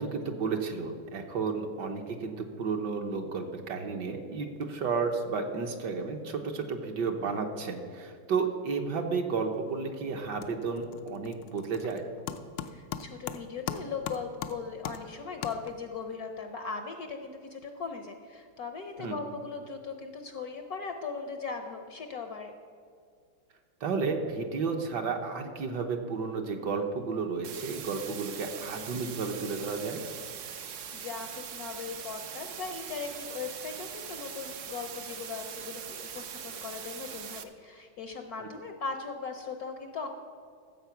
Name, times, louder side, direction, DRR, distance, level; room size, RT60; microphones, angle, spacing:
voice 1, 0.0-12.0 19.0-19.2 23.8-30.0 38.4-38.5, right 5 dB, 60° right, 4 dB, 1.5 m, -32 dB
sound 1, 9.5-9.9 10.2-16.0, left 9 dB, 85° left, 1.5 m, -40 dB
voice 2, 12.7-22.5 30.6-40.1, left 5 dB, 60° left, 6 dB, 1.0 m, -39 dB
sound 2, 27.4-37.4, right 8 dB, 80° right, 0.6 m, -42 dB
14.0 x 7.5 x 5.8 m, 2.2 s
omnidirectional pair, 2.2 m